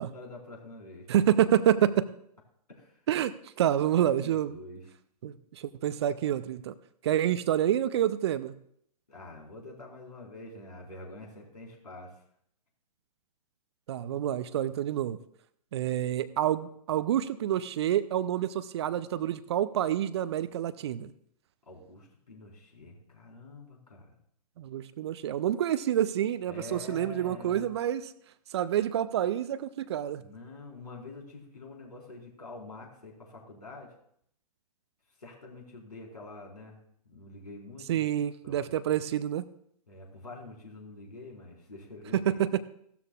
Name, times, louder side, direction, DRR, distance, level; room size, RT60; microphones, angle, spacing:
voice 1, 0.0-1.1 2.7-3.0 4.0-4.9 9.1-12.1 21.7-24.1 26.5-27.7 30.2-33.9 35.2-36.8 37.0-38.1 38.4-39.0 39.9-42.4, left 2 dB, 70° left, -1 dB, 4.5 m, -46 dB
voice 2, 1.1-2.1 3.1-3.3 3.6-4.5 5.2-6.7 7.0-8.5 13.9-15.2 15.7-21.1 24.6-28.1 28.5-30.2 37.9-39.4 42.1-42.6, right 11 dB, 40° right, 14 dB, 0.6 m, -28 dB
16.5 x 13.0 x 2.4 m, 0.68 s
figure-of-eight pair, 115°, 21 cm